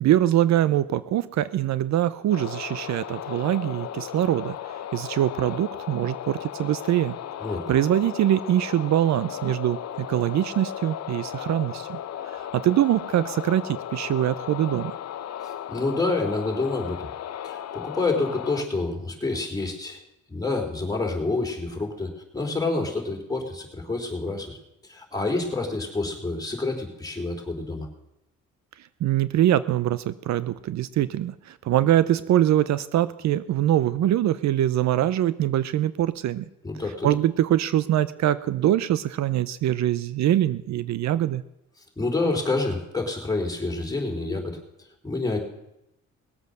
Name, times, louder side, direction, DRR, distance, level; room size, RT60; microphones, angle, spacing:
voice 1, 0.0-4.6 4.9-7.2 7.7-12.0 12.3-14.9 29.0-36.5 37.0-41.4, right 12 dB, 65° right, 16 dB, 0.6 m, -23 dB
sound 1, 2.3-18.7, left 10 dB, 60° left, 0.8 m, -36 dB
voice 2, 15.7-17.1 17.4-20.0 20.3-24.6 24.8-27.9 36.6-37.1 42.0-44.6 45.0-45.4, left 3 dB, 10° left, 0 dB, 3.6 m, -28 dB
19.0 x 8.0 x 6.5 m, 0.86 s
cardioid pair, 90°, 30 cm